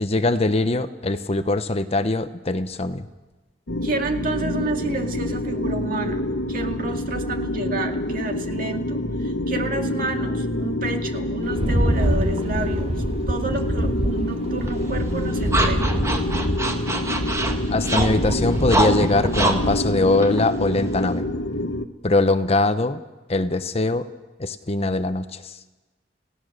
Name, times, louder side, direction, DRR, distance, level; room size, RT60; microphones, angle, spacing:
voice 1, 0.0-3.1 17.7-21.3 22.0-23.0 23.3-24.1 24.4-25.6, left 2 dB, 35° left, 11 dB, 0.9 m, -22 dB
sound 1, 3.7-21.8, left 1 dB, 70° left, 1.1 m, -27 dB
voice 2, 3.8-12.9 13.3-16.0, right 2 dB, 55° right, 4 dB, 2.1 m, -30 dB
Rattle, 11.4-19.9, right 1 dB, 35° right, 1.5 m, -26 dB
sound 2, 14.7-21.2, right 2 dB, 15° right, 1.7 m, -27 dB
28.5 x 16.5 x 6.6 m, 1.2 s
head